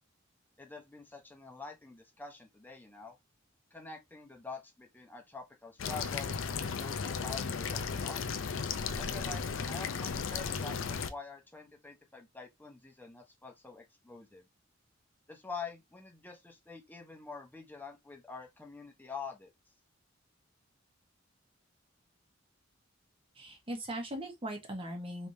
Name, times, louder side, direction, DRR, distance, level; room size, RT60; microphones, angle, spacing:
voice 1, 0.6-3.2 3.7-8.2 9.0-14.5 15.3-19.5, left 4 dB, 10° left, 0.8 m, -46 dB
sound 1, 5.8-11.1, left 6 dB, 75° left, 0.5 m, -35 dB
voice 2, 23.3-25.3, right 1 dB, 25° right, 1.0 m, -39 dB
3.4 x 3.0 x 2.6 m
head